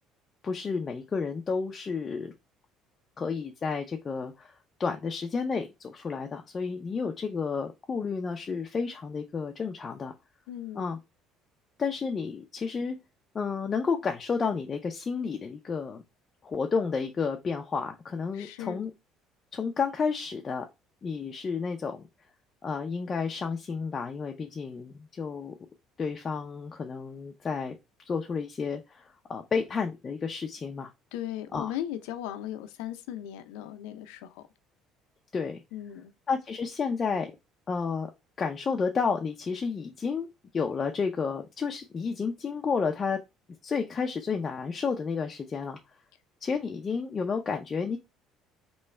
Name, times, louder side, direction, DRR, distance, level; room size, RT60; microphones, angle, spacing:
voice 1, 0.4-2.3 3.2-4.5 4.8-10.1 10.7-11.0 11.8-13.0 13.3-16.0 16.4-18.9 19.5-20.6 21.0-22.0 22.6-25.5 26.0-27.7 28.0-30.9 31.5-31.7 35.3-35.6 36.3-37.3 37.7-38.1 38.4-40.3 40.5-43.2 43.6-45.8 46.4-48.0, left 5 dB, 30° left, 0.5 m, -31 dB
voice 2, 10.5-10.9 18.3-18.9 31.1-34.4 35.7-36.1, left 12 dB, 90° left, 0.6 m, -37 dB
3.3 x 3.0 x 4.2 m
cardioid pair, 105°, 0 cm